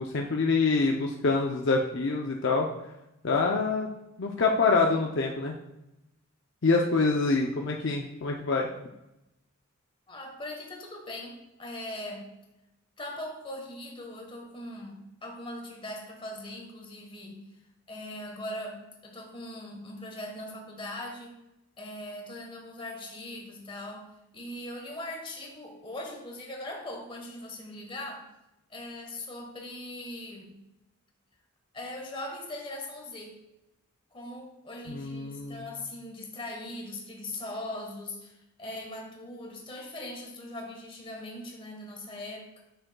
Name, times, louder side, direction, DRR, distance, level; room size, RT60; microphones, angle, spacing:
voice 1, 0.0-2.7 3.2-3.9 4.2-5.5 6.6-8.7 34.9-35.6, left 3 dB, 55° left, 1 dB, 0.5 m, -26 dB
voice 2, 10.1-12.3 13.0-17.4 17.9-21.4 21.8-28.3 28.7-30.6 31.7-33.4 34.1-42.6, left 1 dB, 25° left, 1 dB, 1.2 m, -40 dB
9.1 x 6.2 x 2.2 m, 0.91 s
head